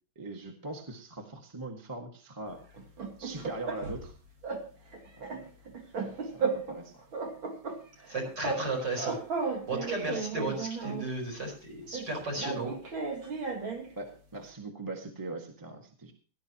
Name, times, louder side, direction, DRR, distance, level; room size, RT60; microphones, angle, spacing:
voice 1, 0.1-2.6 3.2-4.1 5.1-5.5 6.0-7.0 14.0-16.1, right 2 dB, 10° right, 2 dB, 1.5 m, -41 dB
sound 1, 2.7-4.1 4.4-4.7 4.9-6.8 7.1-8.7 8.9-11.1 11.9-13.9, right 4 dB, 75° right, 2.6 m, -35 dB
voice 2, 8.1-9.2 9.4-12.7, right 2 dB, 55° right, 1 dB, 5.5 m, -34 dB
18.0 x 11.5 x 2.9 m, 0.38 s
omnidirectional pair, 2.2 m